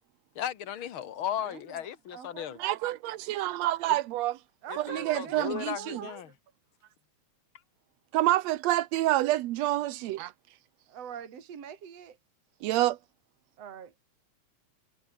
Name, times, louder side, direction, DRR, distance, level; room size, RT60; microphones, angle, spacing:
voice 1, 0.4-2.6 4.7-6.3, left 10 dB, 50° left, 1.9 m, -36 dB
voice 2, 1.5-2.4 4.6-6.2 6.8-6.9 10.9-12.2 13.6-13.9, right 8 dB, 50° right, 3.6 m, -44 dB
voice 3, 2.6-4.4 4.8-6.0 8.1-10.3 12.6-13.0, right 15 dB, 70° right, 1.8 m, -27 dB
omnidirectional pair, 3.7 m